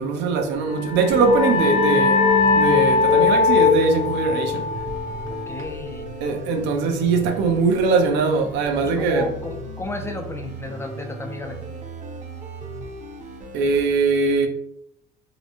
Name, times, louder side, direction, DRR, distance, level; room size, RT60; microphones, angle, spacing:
voice 1, 0.0-2.3 2.5-4.8 5.1-5.2 6.2-9.3 13.5-14.5, right 4 dB, 75° right, 0.7 m, -21 dB
sound 1, 0.7-6.0, left 5 dB, 35° left, 0.7 m, -20 dB
sound 2, 1.1-13.8, right 2 dB, 45° right, 0.7 m, -37 dB
voice 2, 5.5-6.1 8.8-11.8, left 3 dB, 15° left, 0.3 m, -32 dB
3.8 x 2.0 x 3.0 m
cardioid pair, 125°, 18 cm